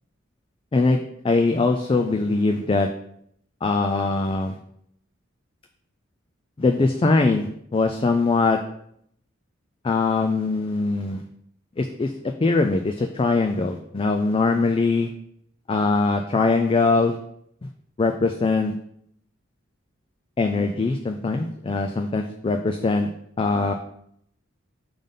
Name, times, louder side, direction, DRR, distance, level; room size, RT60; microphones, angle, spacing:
voice 1, 1.2-2.9 3.6-4.6 6.6-8.6 9.8-11.2 11.8-15.1 15.7-17.2 18.0-18.7 20.4-23.1 23.4-23.7, left 3 dB, 25° left, 5 dB, 0.3 m, -22 dB
5.1 x 3.8 x 5.3 m, 0.71 s
head